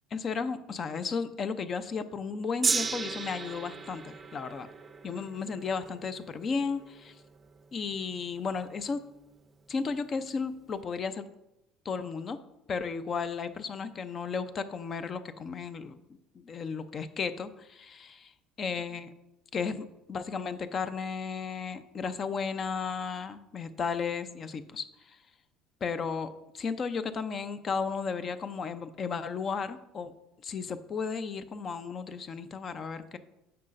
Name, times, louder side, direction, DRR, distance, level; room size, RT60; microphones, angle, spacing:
voice 1, 0.1-4.7 5.0-7.2 7.7-9.0 9.7-11.2 11.8-12.4 12.7-16.0 16.3-18.1 18.6-19.1 19.5-25.2 25.8-30.1 30.4-33.2, left 5 dB, 40° left, 12 dB, 0.5 m, -34 dB
Gong, 2.6-9.0 9.8-9.9, right 5 dB, 30° right, 0.5 m, -36 dB
9.3 x 5.6 x 2.6 m, 0.89 s
hypercardioid pair, 65°, 0 cm